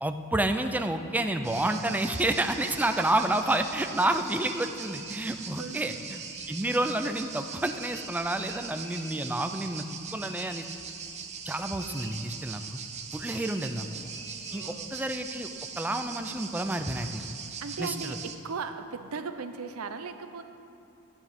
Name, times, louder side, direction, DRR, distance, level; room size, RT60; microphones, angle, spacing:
voice 1, 0.0-6.2 6.5-9.8 10.1-10.6 11.4-12.8 13.1-13.9 14.5-15.5 15.8-17.2 17.8-18.2, right 1 dB, 10° right, 7 dB, 0.4 m, -29 dB
sound 1, 1.0-14.7, left 1 dB, 15° left, 1.3 m, -52 dB
sound 2, 1.4-18.3, right 6 dB, 35° right, 0.7 m, -41 dB
voice 2, 3.0-3.3 5.6-6.1 11.8-12.2 14.5-14.9 17.6-20.4, right 5 dB, 90° right, 8 dB, 0.6 m, -38 dB
sound 3, 13.8-14.7 16.3-17.3, left 1 dB, 55° left, 2.6 m, -55 dB
14.5 x 9.2 x 3.6 m, 2.7 s
head